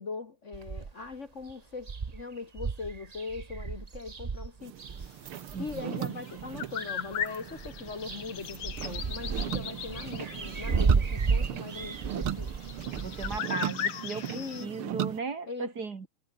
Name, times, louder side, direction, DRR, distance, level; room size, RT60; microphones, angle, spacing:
voice 1, 0.0-4.8 5.6-12.5 14.3-15.0 15.5-15.7, left 4 dB, 40° left, 1.5 m, -40 dB
sound 1, 0.5-1.1 1.5-1.6 1.8-5.8 6.4-7.2 7.5-13.4, right 5 dB, 65° right, 0.4 m, -33 dB
sound 2, 4.6-15.2, right 11 dB, 85° right, 2.1 m, -38 dB
voice 2, 5.5-6.2 13.0-16.1, right 5 dB, 50° right, 2.7 m, -37 dB
sound 3, 6.2-14.7, left 9 dB, 80° left, 2.5 m, -38 dB
omnidirectional pair, 2.3 m